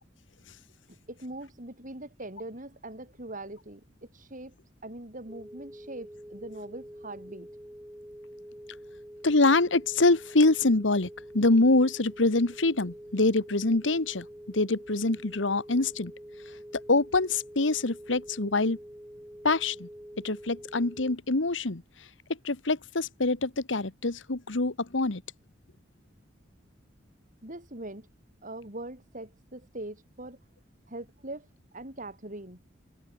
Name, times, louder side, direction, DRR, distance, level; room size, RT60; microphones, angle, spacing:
voice 1, 0.9-4.5 4.8-7.5 27.4-28.1 28.4-30.4 30.9-31.5 31.7-32.6, right 1 dB, 45° right, 6.1 m, -42 dB
sound 1, 5.3-21.2, equal, 10° right, 4.8 m, -46 dB
voice 2, 9.2-16.1 16.9-18.8 19.4-19.9 20.2-21.8 22.4-25.2, left 2 dB, 85° left, 1.5 m, -25 dB
head